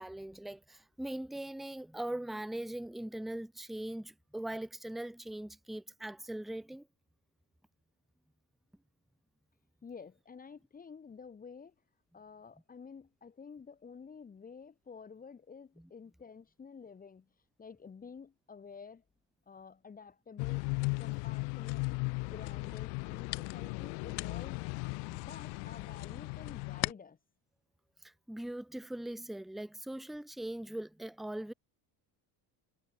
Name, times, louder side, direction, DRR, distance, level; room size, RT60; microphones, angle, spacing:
voice 1, 0.0-6.9 28.0-31.5, right 1 dB, ahead, 1.0 m, -41 dB
voice 2, 9.8-11.7 12.1-17.3 17.6-19.0 19.5-20.7 21.0-24.6 25.1-27.2, left 5 dB, 20° left, 2.8 m, -51 dB
sound 1, 20.4-26.9, left 36 dB, 65° left, 0.5 m, -36 dB
cardioid pair, 160°, 46 cm